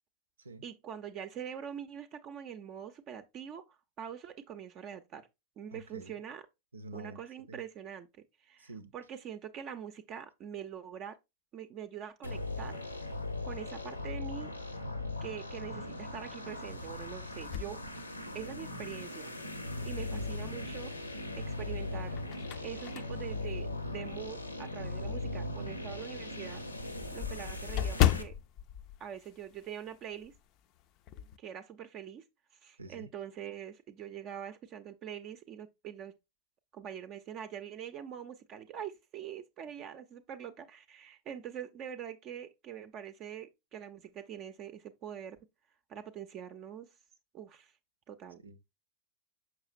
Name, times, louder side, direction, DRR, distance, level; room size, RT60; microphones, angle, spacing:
voice 1, 0.6-5.3 5.6-6.4 6.9-11.2 11.5-12.8 13.4-14.5 15.2-17.8 18.3-19.3 19.8-20.9 21.4-22.2 22.6-26.6 27.1-28.3 29.0-30.3 31.4-32.2 32.6-36.1 36.7-45.4 45.9-46.9 47.3-47.7 48.1-48.4, right 9 dB, 35° right, 0.6 m, -44 dB
voice 2, 5.7-6.1 6.7-7.2 7.5-7.6 8.6-8.9 32.8-33.1 48.4-48.6, right 2 dB, 75° right, 0.6 m, -47 dB
sound 1, 12.2-28.2, left 2 dB, 85° left, 0.8 m, -39 dB
sound 2, 17.4-18.8 19.3-19.4 20.9-21.4 21.9-24.5 25.0-25.1 25.5-25.6 25.8-25.9 26.2-30.0 30.2-30.5 30.8-31.4, left 11 dB, 40° left, 0.4 m, -34 dB
6.3 x 6.0 x 2.5 m
figure-of-eight pair, 90°, 0 cm